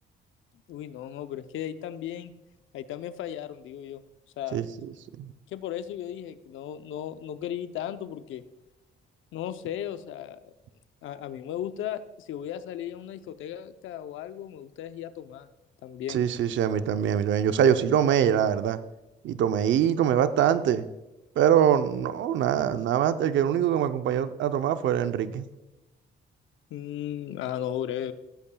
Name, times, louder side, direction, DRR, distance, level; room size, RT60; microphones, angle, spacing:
voice 1, 0.7-2.3 2.7-4.0 4.4-4.6 5.5-8.4 9.3-10.5 11.0-15.5 15.8-16.2 26.7-28.1, left 10 dB, 80° left, 11 dB, 0.7 m, -36 dB
voice 2, 4.5-4.9 5.2-5.3 16.1-18.8 19.2-20.9 21.4-25.5, right 9 dB, 70° right, 11 dB, 0.6 m, -23 dB
16.0 x 8.5 x 2.3 m, 0.99 s
cardioid pair, 90°, 20 cm